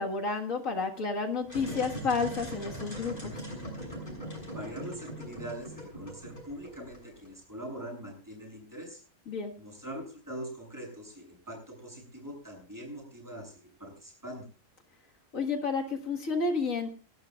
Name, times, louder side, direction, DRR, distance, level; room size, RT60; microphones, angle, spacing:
voice 1, 0.0-3.4 9.3-9.5 15.3-16.9, left 4 dB, 85° left, 2 dB, 2.2 m, -31 dB
sound 1, 1.4-7.3, equal, 40° left, 6.9 m, -40 dB
voice 2, 4.5-9.0 9.6-14.5, right 1 dB, 15° right, -1 dB, 7.5 m, -43 dB
28.0 x 12.5 x 2.4 m, 0.36 s
omnidirectional pair, 1.3 m